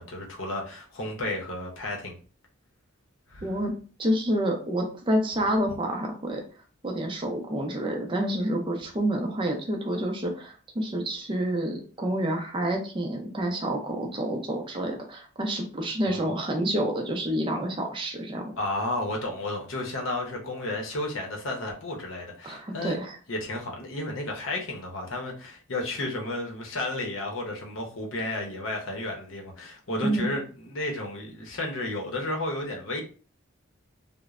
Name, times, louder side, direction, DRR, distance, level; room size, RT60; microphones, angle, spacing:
voice 1, 0.0-2.1 3.3-3.5 16.0-16.3 18.6-23.0 23.3-33.0, left 2 dB, 65° left, 0.8 m, -32 dB
voice 2, 3.4-3.7 4.0-6.4 6.8-18.5 22.4-23.2 30.0-30.3, right 1 dB, 25° right, 0.5 m, -28 dB
3.0 x 2.1 x 2.4 m
head